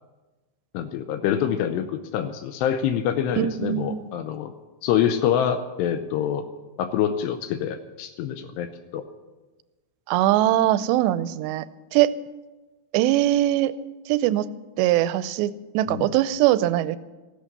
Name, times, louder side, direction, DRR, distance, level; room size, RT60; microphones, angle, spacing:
voice 1, 0.7-4.5 4.8-6.5 6.8-9.0 15.9-16.1, left 9 dB, 80° left, 8 dB, 2.8 m, -26 dB
voice 2, 3.4-4.0 10.1-11.7 11.9-12.1 12.9-13.7 14.1-14.5 14.8-17.0, right 14 dB, 85° right, 15 dB, 2.8 m, -21 dB
15.0 x 13.5 x 6.7 m, 1.2 s
omnidirectional pair, 4.9 m